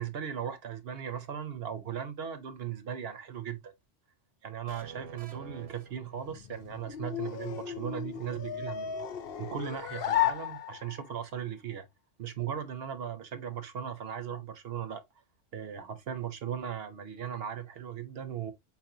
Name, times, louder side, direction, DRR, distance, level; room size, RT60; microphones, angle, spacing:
voice 1, 0.0-3.7 4.4-9.0 9.4-11.9 12.2-15.0 15.5-18.5, right 8 dB, 60° right, 0.9 m, -37 dB
sound 1, 4.7-6.7, right 5 dB, 80° right, 1.2 m, -48 dB
sound 2, 6.1-11.2, left 11 dB, 60° left, 0.8 m, -34 dB
4.3 x 4.3 x 2.7 m
omnidirectional pair, 1.2 m